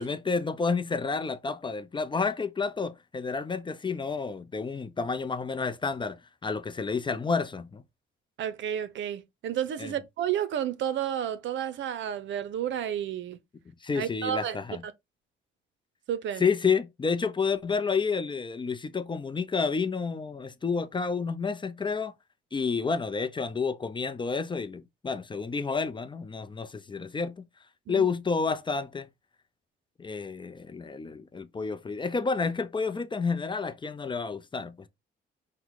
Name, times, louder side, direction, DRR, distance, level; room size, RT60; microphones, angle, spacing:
voice 1, 0.0-7.8 9.8-9.9 13.8-14.8 16.4-22.1 22.5-27.4 27.9-29.1 30.0-34.9, left 5 dB, 25° left, 0.5 m, -30 dB
voice 2, 8.4-13.4 13.9-14.6 14.8-14.9 16.1-16.4 27.9-28.1, right 10 dB, 70° right, 0.7 m, -31 dB
5.8 x 2.2 x 4.0 m
cardioid pair, 90°, 20 cm